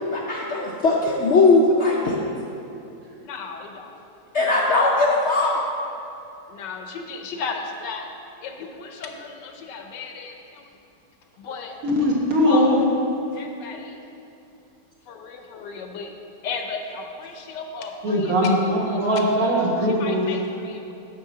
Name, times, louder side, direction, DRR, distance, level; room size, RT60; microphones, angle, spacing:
voice 1, 0.1-2.1 4.3-5.5, left 3 dB, 60° left, -3 dB, 0.8 m, -19 dB
voice 2, 3.2-3.9 6.5-8.1 8.4-10.6 11.4-11.8 12.4-12.8 13.3-14.0 15.1-16.1 16.4-19.3 19.8-20.9, left 5 dB, 80° left, 3 dB, 1.4 m, -35 dB
voice 3, 11.8-12.8 18.0-20.3, equal, 55° right, -3 dB, 1.7 m, -20 dB
6.6 x 5.5 x 6.6 m, 2.7 s
omnidirectional pair, 1.9 m